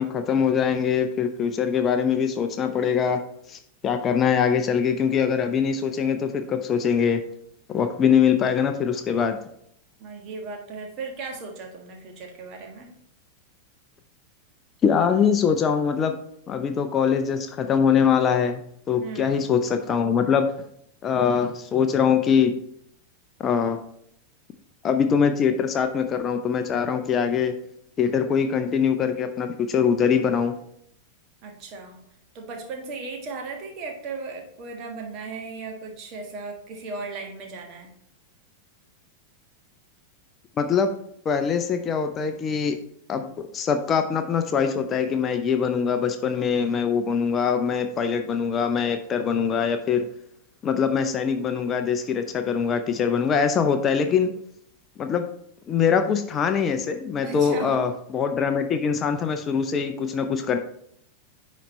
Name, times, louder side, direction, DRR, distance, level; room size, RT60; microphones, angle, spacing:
voice 1, 0.0-3.2 3.5-7.2 7.7-9.4 14.8-16.2 16.5-18.6 18.9-20.5 21.0-22.5 23.4-23.8 24.8-27.6 28.0-30.6 40.6-40.9 41.3-42.8 43.1-43.3 43.5-50.1 50.6-54.3 55.0-55.3 55.7-60.6, left 7 dB, 25° left, 7 dB, 0.5 m, -23 dB
voice 2, 10.0-12.9 19.0-19.4 31.4-32.0 32.3-37.9 57.2-57.9, right 4 dB, 35° right, 2 dB, 1.6 m, -36 dB
10.0 x 4.1 x 3.2 m, 0.69 s
figure-of-eight pair, 90°, 0 cm